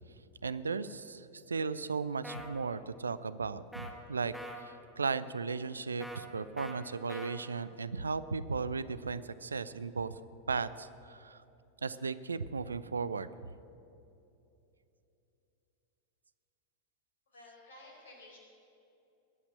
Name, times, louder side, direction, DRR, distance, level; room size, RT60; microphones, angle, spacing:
voice 1, 0.4-4.3 4.6-10.2 10.5-11.4 11.8-13.5, right 4 dB, 75° right, 15 dB, 0.5 m, -36 dB
sound 1, 2.2-2.5 3.7-3.9 4.3-4.6 6.0-6.2 6.6-6.8 7.1-7.3, equal, ahead, 1.7 m, -43 dB
voice 2, 17.3-18.4, left 2 dB, 65° left, 0 dB, 4.6 m, -53 dB
21.5 x 8.6 x 7.7 m, 2.8 s
figure-of-eight pair, 90°, 0 cm